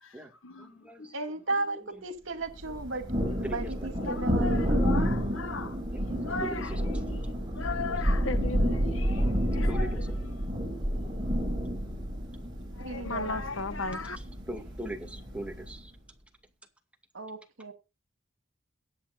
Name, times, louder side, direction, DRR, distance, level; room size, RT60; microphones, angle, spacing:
voice 1, 0.0-1.1 4.0-10.1 10.3-10.5 12.8-14.2, left 3 dB, 80° left, 1.3 m, -37 dB
voice 2, 0.6-1.1 3.4-3.7 5.9-6.1 6.4-6.8 7.5-7.6 9.7-10.1 14.5-15.9, right 1 dB, 5° right, 2.2 m, -40 dB
voice 3, 1.1-4.7 12.8-13.4 17.1-17.7, right 2 dB, 70° right, 2.4 m, -35 dB
Thunder, 2.6-15.8, equal, 20° right, 7.4 m, -30 dB
22.0 x 8.8 x 2.6 m
head